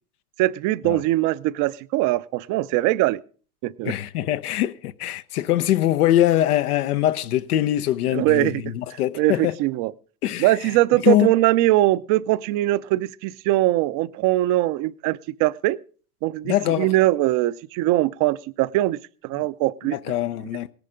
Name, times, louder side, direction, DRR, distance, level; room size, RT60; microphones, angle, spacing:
voice 1, 0.4-3.2 3.6-3.9 8.1-9.9 10.4-15.8 16.2-20.0, right 17 dB, 45° right, 0.6 m, -22 dB
voice 2, 3.8-9.6 10.2-10.5 11.0-11.3 16.4-16.9 19.8-20.7, left 13 dB, 80° left, 0.7 m, -22 dB
18.0 x 10.5 x 3.7 m
hypercardioid pair, 100°, 45 cm